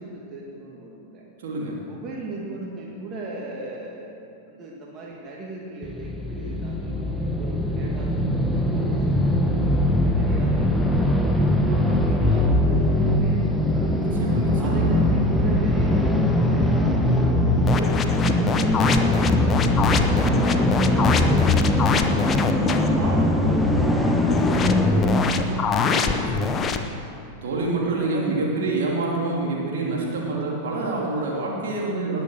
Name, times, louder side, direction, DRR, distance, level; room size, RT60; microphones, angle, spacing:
voice 1, 0.0-1.2 1.9-4.1 4.4-11.4 11.8-14.1 14.6-19.5 19.8-20.9 21.3-25.7, right 2 dB, 30° right, -3 dB, 2.1 m, -38 dB
voice 2, 1.4-1.9 11.7-12.1 13.9-15.0 22.6-23.0 25.7-26.8 27.4-32.2, right 3 dB, 60° right, -2 dB, 2.8 m, -27 dB
sound 1, 5.8-25.3, left 1 dB, ahead, 1.2 m, -21 dB
sound 2, 17.7-22.9 24.3-26.8, left 5 dB, 25° left, 0.9 m, -25 dB
19.5 x 7.9 x 6.4 m, 2.6 s
figure-of-eight pair, 90°, 0 cm